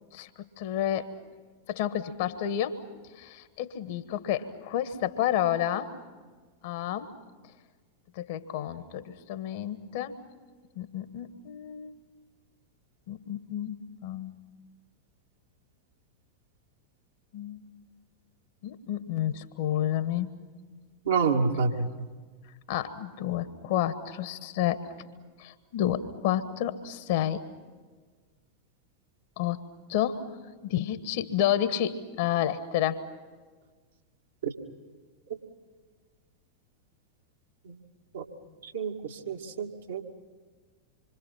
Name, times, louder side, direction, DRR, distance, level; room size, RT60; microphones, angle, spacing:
voice 1, 0.6-1.1 1.7-2.8 3.2-5.9 6.6-7.1 8.1-10.2 10.7-11.9 13.1-14.4 17.3-17.7 18.6-20.3 22.7-24.8 25.4-27.4 29.4-29.6 29.9-30.2 30.6-33.0, left 11 dB, 50° left, 11 dB, 1.6 m, -30 dB
voice 2, 21.1-21.9 38.1-38.2 38.7-38.9 39.3-40.0, right 5 dB, 65° right, 1 dB, 2.4 m, -27 dB
27.0 x 25.0 x 5.8 m, 1.4 s
figure-of-eight pair, 90°, 0 cm